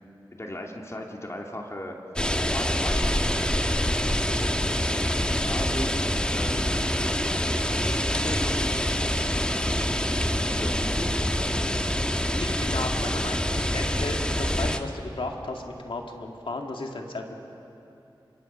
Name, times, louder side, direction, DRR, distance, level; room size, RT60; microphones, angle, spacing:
voice 1, 0.3-1.9 2.5-3.9 5.0-6.6 8.1-9.2 10.4-11.1, left 1 dB, 35° left, 1 dB, 2.5 m, -37 dB
sound 1, 2.2-14.8, equal, 10° left, 1.2 m, -26 dB
voice 2, 12.4-17.4, left 2 dB, 80° left, 2 dB, 2.0 m, -34 dB
26.0 x 23.0 x 5.6 m, 2.8 s
cardioid pair, 40°, 9 cm